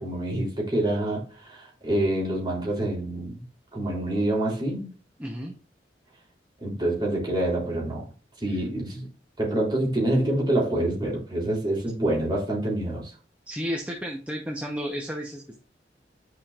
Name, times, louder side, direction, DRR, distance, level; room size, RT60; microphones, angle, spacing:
voice 1, 0.0-3.4 3.7-4.9 6.6-8.1 8.4-9.1 9.4-13.1, right 1 dB, 25° right, 3.4 m, -26 dB
voice 2, 5.2-5.6 8.5-8.6 13.5-15.6, equal, 10° right, 0.9 m, -32 dB
10.5 x 5.0 x 2.5 m
head